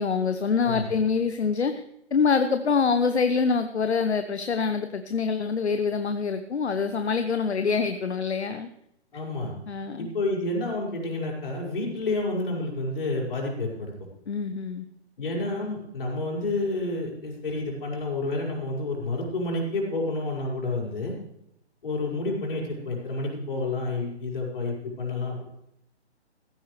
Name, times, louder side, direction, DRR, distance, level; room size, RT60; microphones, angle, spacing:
voice 1, 0.0-1.7 2.1-8.7 9.7-10.1 14.3-14.9, left 5 dB, 75° left, 9 dB, 1.0 m, -25 dB
voice 2, 9.1-9.5 10.0-13.9 15.2-21.1 21.8-25.4, left 2 dB, 55° left, -1 dB, 5.4 m, -29 dB
15.0 x 15.0 x 3.3 m, 0.76 s
figure-of-eight pair, 140°, 33 cm